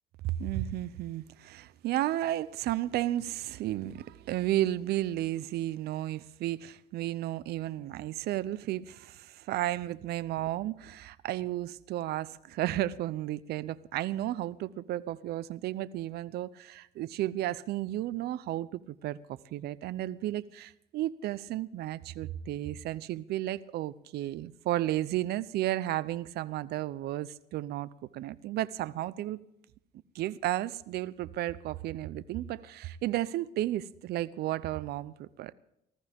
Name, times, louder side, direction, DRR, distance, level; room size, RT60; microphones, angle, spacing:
voice 1, 0.2-29.4 30.1-35.5, right 14 dB, 75° right, 0.7 m, -33 dB
19.0 x 15.0 x 3.6 m
cardioid pair, 110°, 17 cm